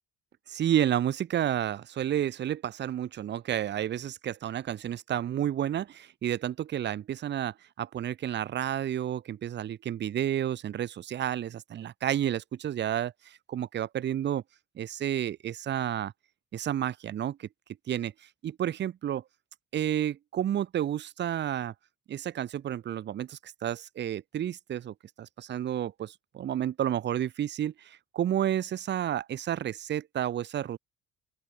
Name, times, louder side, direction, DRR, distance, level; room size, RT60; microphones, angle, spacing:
voice 1, 0.5-14.4 14.8-16.1 16.5-17.5 17.9-18.1 18.4-19.2 19.7-21.7 22.1-30.8, right 11 dB, 35° right, 0.5 m, -31 dB
open air
cardioid pair, 160°, 33 cm